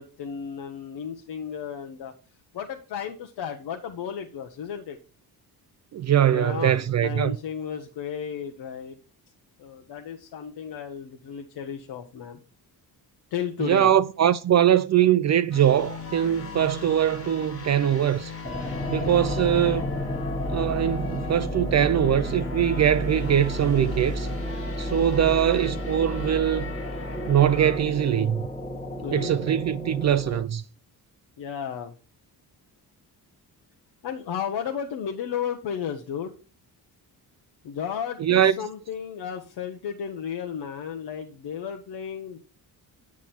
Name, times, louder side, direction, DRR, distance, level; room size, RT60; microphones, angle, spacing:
voice 1, 0.0-2.1 2.5-5.0 6.3-9.0 9.6-12.4 13.3-13.9 29.0-29.3 31.4-31.9 34.0-36.4 37.6-42.4, left 8 dB, 75° left, 1.1 m, -33 dB
voice 2, 5.9-7.3 13.6-18.3 18.9-19.9 20.5-24.3 24.8-26.7 27.3-28.4 29.1-30.6 38.2-38.6, right 10 dB, 45° right, 0.5 m, -22 dB
sound 1, 15.5-27.8, left 5 dB, 35° left, 1.7 m, -39 dB
sound 2, 18.4-30.4, left 1 dB, 15° left, 1.5 m, -31 dB
9.5 x 6.2 x 4.3 m
cardioid pair, 100°, 39 cm